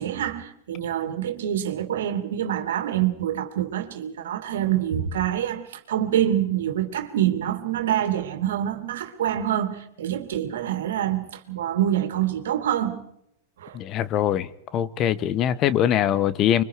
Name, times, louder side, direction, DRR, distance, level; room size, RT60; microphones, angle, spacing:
voice 1, 0.0-13.0 13.6-13.8, right 11 dB, 75° right, 2.6 m, -26 dB
voice 2, 13.7-16.6, left 10 dB, 40° left, 1.0 m, -23 dB
26.0 x 23.5 x 4.8 m
hypercardioid pair, 110°, 0 cm